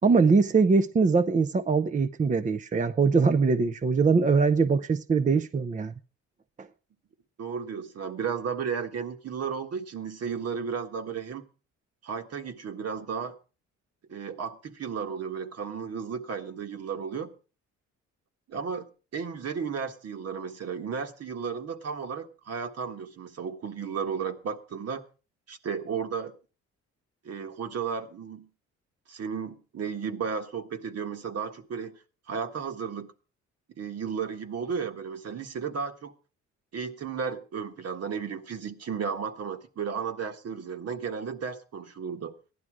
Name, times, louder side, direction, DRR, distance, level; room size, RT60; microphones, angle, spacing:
voice 1, 0.0-5.9 6.6-6.7, right 4 dB, 25° right, 0.6 m, -22 dB
voice 2, 7.4-11.4 12.0-13.3 14.1-17.3 18.5-25.0 25.5-26.3 27.2-28.5 29.1-31.9 32.3-33.1 33.8-36.1 36.7-42.3, right 6 dB, 55° right, 1.6 m, -34 dB
15.0 x 11.0 x 4.8 m
cardioid pair, 90°, 30 cm